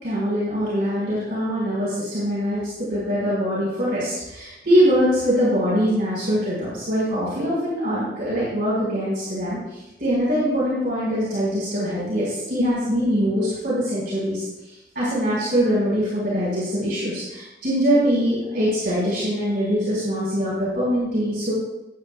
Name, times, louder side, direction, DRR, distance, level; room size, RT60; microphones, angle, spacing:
voice 1, 0.0-2.6 2.9-14.4 14.9-21.5, equal, 60° right, -8 dB, 4.5 m, -23 dB
18.5 x 9.4 x 2.4 m, 1.0 s
head